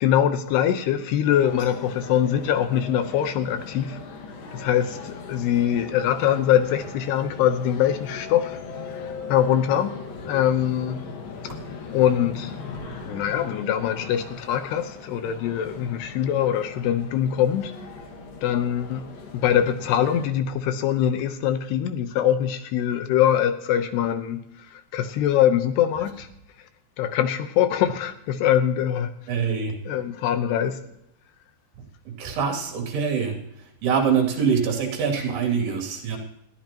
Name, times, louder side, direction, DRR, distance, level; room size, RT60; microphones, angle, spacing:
voice 1, 0.0-4.0 4.5-8.6 9.3-11.0 11.9-12.6 13.1-17.7 18.4-19.0 19.4-24.4 24.7-26.3 27.0-29.1 29.9-30.8, left 10 dB, 80° left, 2.9 m, -23 dB
sound 1, 1.3-20.3, left 4 dB, 60° left, 3.3 m, -39 dB
voice 2, 29.3-29.7 32.1-33.4 33.8-36.2, right 6 dB, 70° right, 4.7 m, -24 dB
21.0 x 14.0 x 3.0 m
omnidirectional pair, 5.0 m